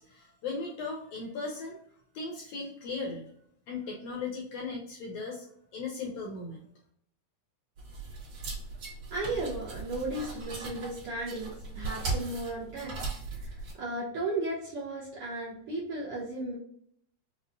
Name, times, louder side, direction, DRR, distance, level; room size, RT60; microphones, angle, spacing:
voice 1, 0.0-1.8 2.1-3.2 3.7-5.4 5.7-6.7, left 4 dB, 75° left, -1 dB, 1.6 m, -37 dB
sound 1, 7.8-13.7, right 3 dB, 50° right, 1.7 m, -38 dB
voice 2, 9.1-11.5 11.7-13.1 13.4-16.6, right 2 dB, 65° right, -6 dB, 1.5 m, -35 dB
5.4 x 2.1 x 2.5 m, 0.65 s
omnidirectional pair, 3.6 m